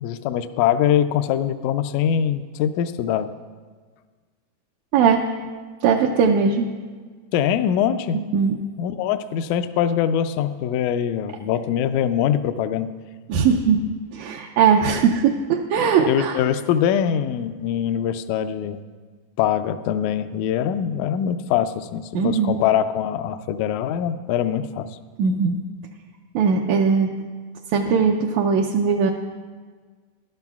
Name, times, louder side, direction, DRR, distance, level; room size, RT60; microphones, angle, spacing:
voice 1, 0.0-3.3 7.3-8.2 8.8-12.9 16.1-18.8 19.4-24.9, left 9 dB, 80° left, 11 dB, 1.7 m, -23 dB
voice 2, 5.8-6.7 8.1-8.6 13.3-13.8 14.1-16.4 22.2-22.6 25.2-25.6 26.4-27.1 27.7-29.1, right 6 dB, 75° right, 1 dB, 1.7 m, -19 dB
21.0 x 12.0 x 2.4 m, 1.5 s
omnidirectional pair, 3.7 m